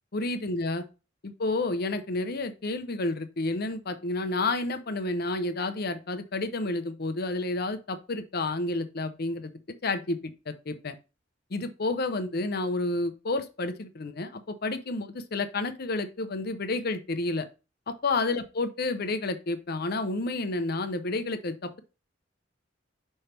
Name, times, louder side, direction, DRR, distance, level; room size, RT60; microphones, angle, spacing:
voice 1, 0.1-0.8 1.2-9.5 9.8-10.2 10.5-10.9 11.5-17.4 17.9-21.8, left 2 dB, 55° left, 10 dB, 0.7 m, -30 dB
5.4 x 3.4 x 5.6 m, 0.30 s
head